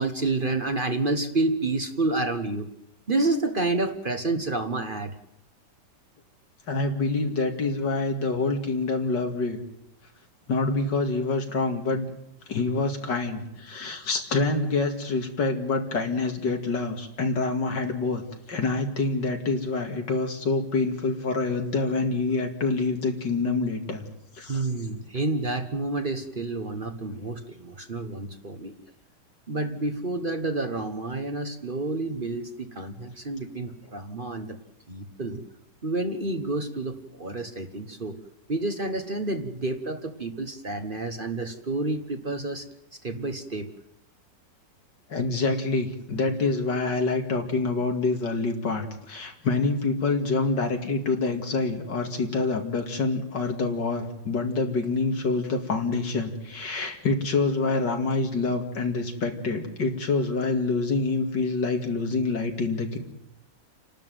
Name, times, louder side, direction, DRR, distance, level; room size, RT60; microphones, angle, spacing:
voice 1, 0.0-2.7 3.1-5.1 24.5-28.7 29.5-34.5 34.9-35.4 35.8-38.2 38.5-42.6 43.0-43.7, right 2 dB, 30° right, 7 dB, 1.4 m, -29 dB
voice 2, 6.7-9.6 10.5-12.1 12.5-18.2 18.5-24.0 24.3-24.9 45.1-63.0, left 3 dB, 80° left, 4 dB, 3.0 m, -26 dB
29.0 x 12.5 x 9.3 m, 0.79 s
omnidirectional pair, 1.9 m